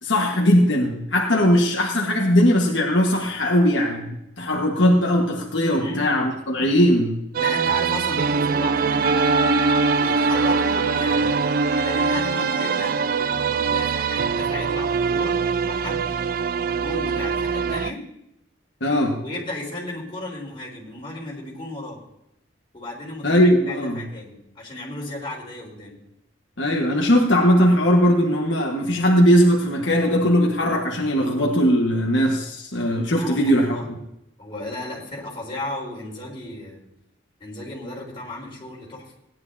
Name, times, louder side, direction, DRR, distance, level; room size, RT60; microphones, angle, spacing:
voice 1, 0.0-4.1 4.4-7.1 18.8-19.2 23.2-24.0 26.6-34.0, equal, 65° left, -1 dB, 1.5 m, -19 dB
voice 2, 5.7-6.0 7.4-9.1 9.9-11.4 11.8-15.3 15.6-16.2 16.6-18.0 19.2-22.0 22.7-26.0 33.1-33.9 34.4-36.8 37.4-39.1, left 2 dB, 25° left, -5 dB, 4.1 m, -34 dB
sound 1, 7.3-17.9, right 5 dB, 45° right, 0.3 m, -22 dB
Wind instrument woodwind instrument, 8.3-13.1, right 1 dB, 25° right, 1.4 m, -30 dB
17.0 x 11.0 x 2.7 m, 0.83 s
head